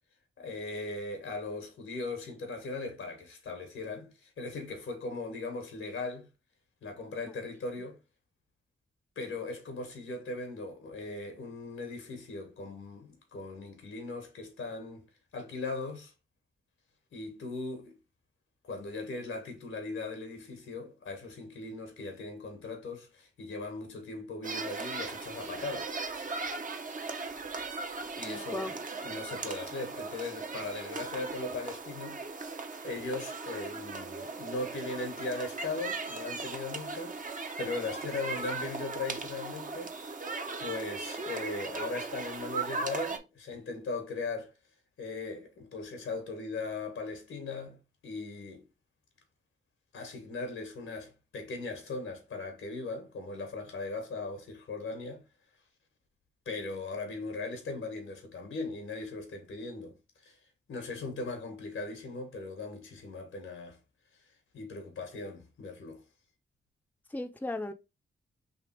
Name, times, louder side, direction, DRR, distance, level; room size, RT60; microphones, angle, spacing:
voice 1, 0.4-6.3 6.8-8.0 9.1-15.1 15.3-16.1 17.1-17.9 18.6-26.0 28.0-32.2 32.8-40.0 40.6-44.5 45.0-48.7 49.9-55.2 56.4-60.0 60.2-60.4 60.7-63.8 64.5-66.0, left 3 dB, 85° left, 1.4 m, -39 dB
sound 1, 24.4-43.2, right 4 dB, 40° right, 0.8 m, -38 dB
voice 2, 28.3-28.7 67.1-67.7, left 2 dB, 10° left, 0.6 m, -36 dB
3.4 x 2.8 x 4.4 m
cardioid pair, 50°, 21 cm